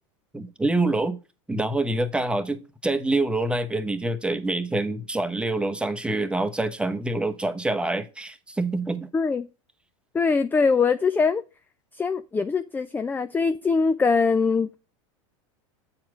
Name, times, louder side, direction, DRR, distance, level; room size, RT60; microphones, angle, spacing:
voice 1, 0.3-1.2 1.5-9.1, right 2 dB, 5° right, 0.9 m, -26 dB
voice 2, 9.1-9.5 10.1-11.4 12.0-14.8, left 4 dB, 10° left, 0.4 m, -22 dB
8.6 x 4.4 x 4.8 m
hypercardioid pair, 95°, 17 cm